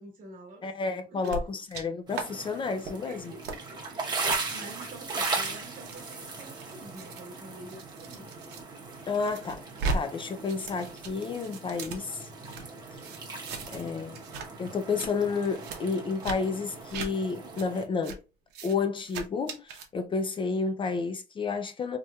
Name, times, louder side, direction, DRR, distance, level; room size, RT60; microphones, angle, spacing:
voice 1, 0.0-1.4 3.0-4.2 4.5-8.3, equal, 55° right, 1.3 m, -47 dB
voice 2, 0.6-3.3 9.1-9.6 9.9-12.3 13.7-14.2 14.6-18.2 18.6-22.0, left 4 dB, 30° left, 0.4 m, -31 dB
sound 1, 1.2-1.8 2.1-2.3 2.6-2.9 3.4-3.6 4.2-4.4 5.0-8.6 9.0-10.0 10.2-12.6 13.0-13.9 14.1-14.5 14.8-15.1 15.6-15.8 16.2-16.4 16.9-17.1 17.6-17.7 18.0-18.2 18.5-18.7 19.1-19.9, right 3 dB, 80° right, 0.8 m, -37 dB
sound 2, 2.1-17.9, right 3 dB, 25° right, 0.9 m, -38 dB
3.2 x 2.9 x 2.2 m
cardioid pair, 110°, 17 cm